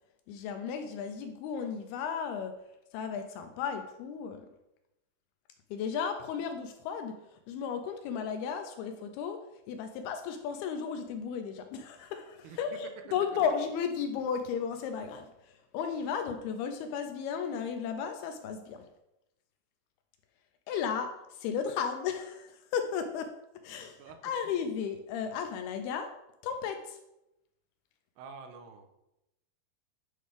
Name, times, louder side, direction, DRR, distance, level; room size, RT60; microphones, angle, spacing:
voice 1, 0.3-2.5 2.9-4.4 5.7-7.1 7.5-9.4 9.7-18.8 20.7-23.3 23.6-24.0 24.2-26.1 26.4-27.0, left 7 dB, 80° left, 6 dB, 2.4 m, -34 dB
voice 2, 23.8-24.2 24.4-24.6 28.2-29.1, right 5 dB, 85° right, 5 dB, 2.9 m, -49 dB
10.0 x 5.2 x 3.4 m, 0.89 s
omnidirectional pair, 4.8 m